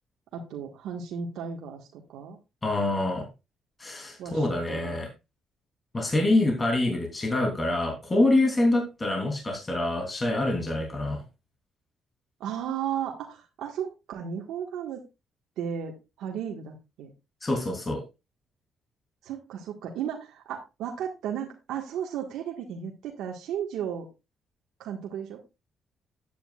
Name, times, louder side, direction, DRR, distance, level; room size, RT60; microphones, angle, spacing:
voice 1, 0.3-2.4 4.2-5.0 12.4-15.0 15.6-17.1 19.2-24.1 24.8-25.4, right 8 dB, 85° right, 1 dB, 1.5 m, -34 dB
voice 2, 2.6-3.3 3.8-5.1 5.9-11.2 17.4-18.0, left 2 dB, 25° left, 1 dB, 3.2 m, -26 dB
11.5 x 9.4 x 2.4 m, 0.25 s
cardioid pair, 90°, 0 cm